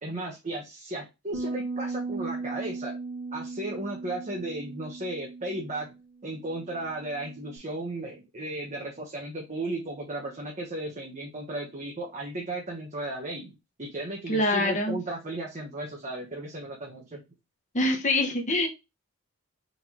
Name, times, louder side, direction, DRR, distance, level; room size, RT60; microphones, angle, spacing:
voice 1, 0.0-3.0 3.3-5.9 6.2-17.2, right 2 dB, 30° right, -1 dB, 0.9 m, -35 dB
sound 1, 1.3-7.6, right 3 dB, 80° right, 1.2 m, -37 dB
voice 2, 14.3-15.0 17.7-18.7, left 1 dB, 35° left, 2 dB, 0.9 m, -24 dB
4.0 x 3.3 x 2.9 m, 0.24 s
head